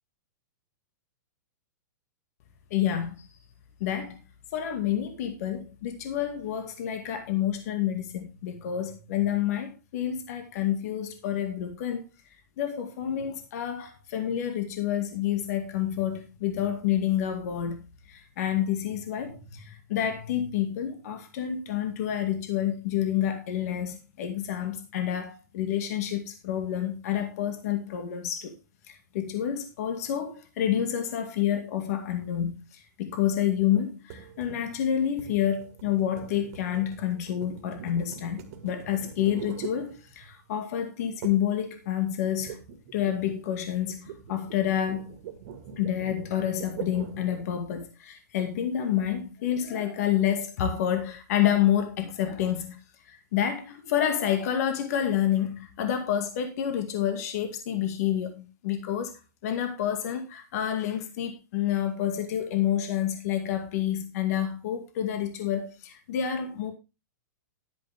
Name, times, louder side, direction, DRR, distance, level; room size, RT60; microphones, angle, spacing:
voice 1, 2.7-3.3 3.8-4.2 4.5-12.0 12.6-17.8 18.1-28.6 28.9-42.6 42.9-45.3 45.8-52.8 53.1-59.1 59.4-66.7, left 10 dB, 50° left, 2.2 m, -29 dB
sound 1, 34.1-40.4 41.2-41.6 41.8-47.5, right 8 dB, 50° right, 2.2 m, -43 dB
11.5 x 10.0 x 3.6 m
hypercardioid pair, 150°, 10 cm